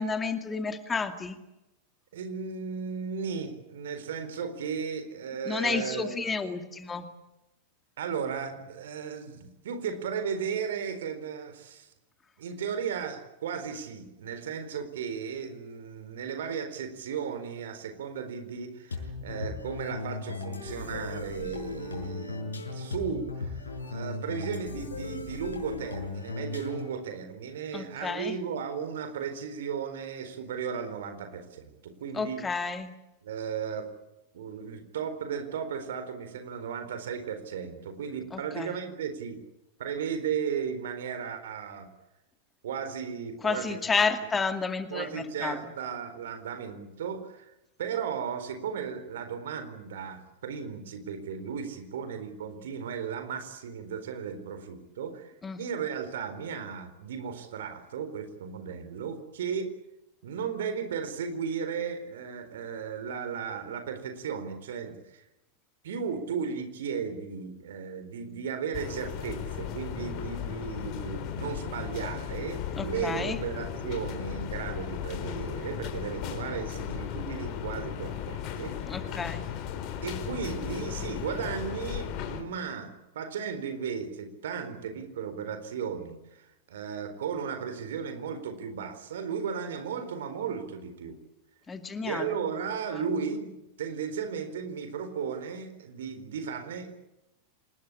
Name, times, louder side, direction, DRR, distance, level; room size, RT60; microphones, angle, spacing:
voice 1, 0.0-1.4 5.4-7.1 27.7-28.4 32.1-32.9 38.3-38.8 43.4-45.6 55.4-55.6 72.8-73.4 78.9-79.4 91.7-92.4 92.9-93.1, left 4 dB, 15° left, 8 dB, 2.4 m, -31 dB
voice 2, 2.1-6.2 8.0-11.9 12.4-32.4 33.2-33.9 34.3-39.4 39.8-41.9 42.6-43.8 44.9-47.5 47.8-59.7 60.2-65.2 65.8-79.0 80.0-91.2 92.0-93.5 93.8-97.0, right 6 dB, 60° right, 9 dB, 4.1 m, -35 dB
sound 1, 18.9-27.0, left 3 dB, 75° left, 6.6 m, -37 dB
sound 2, 68.7-82.4, left 9 dB, 40° left, 4.1 m, -36 dB
27.0 x 20.5 x 8.7 m, 0.95 s
figure-of-eight pair, 90°, 0 cm